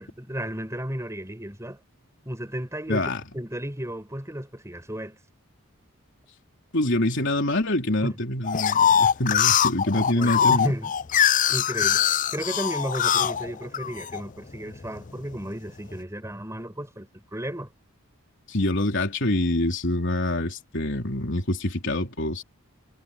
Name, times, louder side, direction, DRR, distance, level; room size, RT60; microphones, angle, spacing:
voice 1, 0.0-1.8 2.3-5.2 8.0-8.2 9.9-10.9 11.5-17.7, equal, 15° right, 5.6 m, -34 dB
voice 2, 2.9-3.2 6.7-10.7 18.5-22.4, left 1 dB, 55° left, 3.7 m, -25 dB
sound 1, 8.4-14.2 14.7-15.4, left 8 dB, 35° left, 0.5 m, -22 dB
head